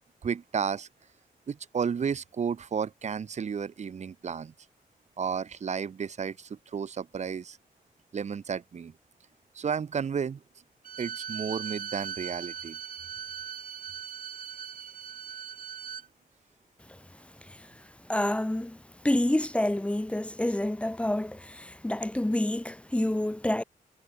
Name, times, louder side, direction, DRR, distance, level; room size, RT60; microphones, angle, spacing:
voice 1, 0.2-0.9 1.5-4.5 5.2-7.6 8.1-8.9 9.5-10.4 11.0-12.8, right 6 dB, 50° right, 3.1 m, -32 dB
Bowed string instrument, 10.8-16.1, right 8 dB, 70° right, 4.4 m, -39 dB
voice 2, 18.1-18.8 19.0-23.6, left 1 dB, 10° left, 1.4 m, -28 dB
wide cardioid pair, 150°, 15 cm